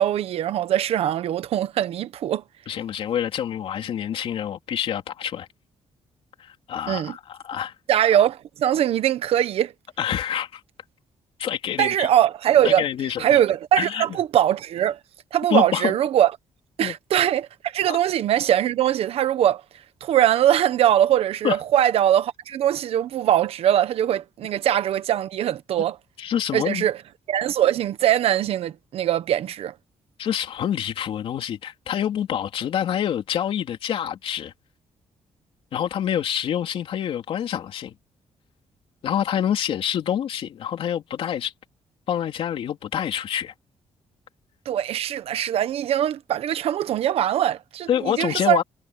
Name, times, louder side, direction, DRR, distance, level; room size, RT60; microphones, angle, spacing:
voice 1, 0.0-2.4 6.9-7.2 7.9-9.7 11.8-12.8 13.2-15.0 15.3-16.3 16.8-19.6 20.0-26.0 26.5-27.0 27.3-29.7 44.6-48.6, right 11 dB, 65° right, 1.2 m, -21 dB
voice 2, 2.7-5.5 6.4-7.7 10.0-10.6 11.4-12.1 12.6-13.4 13.8-14.0 15.5-15.9 16.8-16.9 17.9-18.0 21.4-21.6 26.2-26.9 30.2-34.5 35.7-37.9 39.0-41.5 42.1-43.5 47.9-48.6, left 9 dB, 60° left, 3.6 m, -26 dB
cardioid pair, 180°, 11 cm